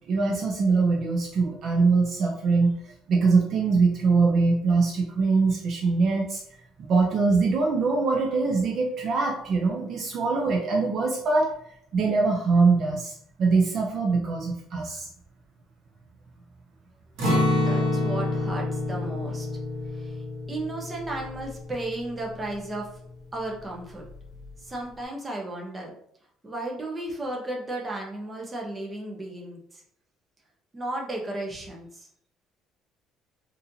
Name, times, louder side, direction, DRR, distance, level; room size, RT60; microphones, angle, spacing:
voice 1, 0.1-2.8 3.1-6.4 6.8-11.5 11.9-15.1, right 4 dB, 45° right, 0 dB, 0.5 m, -23 dB
Acoustic guitar, 17.2-23.1 23.4-23.6 24.0-24.5, left 1 dB, 90° right, 1.1 m, -28 dB
voice 2, 17.5-19.5 19.9-22.9 23.3-24.0 24.6-25.9 26.4-29.8 30.7-32.1, right 2 dB, 20° right, -1 dB, 0.8 m, -34 dB
4.1 x 2.6 x 2.7 m, 0.69 s
cardioid pair, 145°, 0 cm